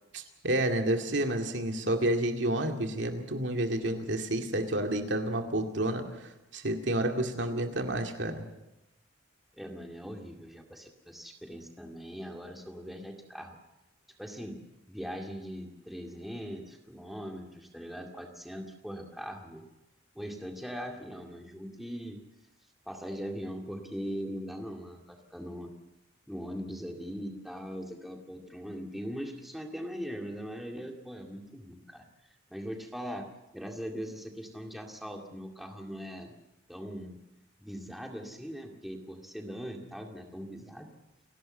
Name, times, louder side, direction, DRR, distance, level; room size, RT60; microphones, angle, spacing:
voice 1, 0.1-6.0 6.5-8.5, right 1 dB, 70° right, 4 dB, 2.2 m, -30 dB
voice 2, 9.6-13.6 14.2-14.6 14.9-19.7 20.2-22.2 22.9-25.7 26.3-32.1 32.5-33.3 33.5-36.3 36.7-37.2 37.6-40.9, equal, ahead, 2 dB, 2.1 m, -40 dB
29.0 x 12.0 x 7.8 m, 0.96 s
head